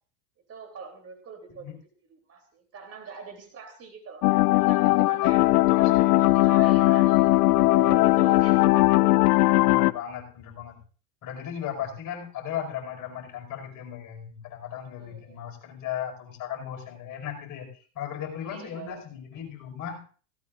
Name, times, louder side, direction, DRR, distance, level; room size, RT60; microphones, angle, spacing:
voice 1, 0.5-1.7 2.1-4.3 4.5-5.5 5.8-9.2 14.7-15.6 18.5-19.0, right 5 dB, 30° right, 5 dB, 3.4 m, -43 dB
sound 1, 4.2-9.9, left 21 dB, 75° left, 0.5 m, -19 dB
voice 2, 5.7-6.7 9.6-10.8 11.2-17.7 18.0-20.0, left 9 dB, 40° left, 1 dB, 5.4 m, -37 dB
17.5 x 17.0 x 2.6 m, 0.41 s
hypercardioid pair, 105°, 47 cm